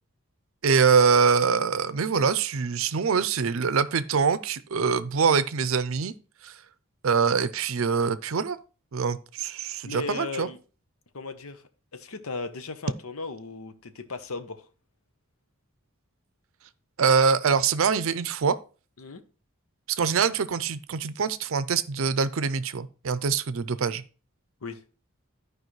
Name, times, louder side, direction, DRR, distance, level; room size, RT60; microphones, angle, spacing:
voice 1, 0.6-6.1 6.4-6.5 7.0-8.6 8.9-10.5 17.0-18.6 20.0-24.0, right 5 dB, 70° right, 0.5 m, -24 dB
voice 2, 9.8-10.6 11.1-11.6 11.9-14.6 19.0-19.2 24.6-24.8, left 3 dB, 85° left, 0.9 m, -36 dB
13.5 x 4.9 x 3.2 m
head